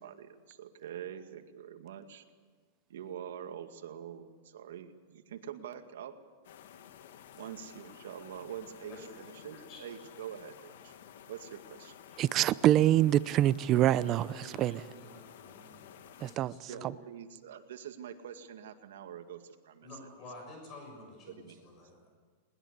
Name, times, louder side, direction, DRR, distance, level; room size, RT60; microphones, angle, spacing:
voice 1, 0.0-2.2 2.9-6.2 7.4-10.9 11.3-11.9 16.7-19.9 21.3-21.6, right 9 dB, 85° right, 2.1 m, -45 dB
sound 1, 6.4-16.4, left 9 dB, 75° left, 1.7 m, -53 dB
voice 2, 8.7-9.0 9.4-9.8 13.8-16.9 19.8-22.1, left 2 dB, 30° left, 6.5 m, -51 dB
voice 3, 12.2-14.8 16.2-16.5, right 13 dB, 30° right, 0.6 m, -25 dB
21.0 x 20.0 x 8.2 m
supercardioid pair, 150°, 0 cm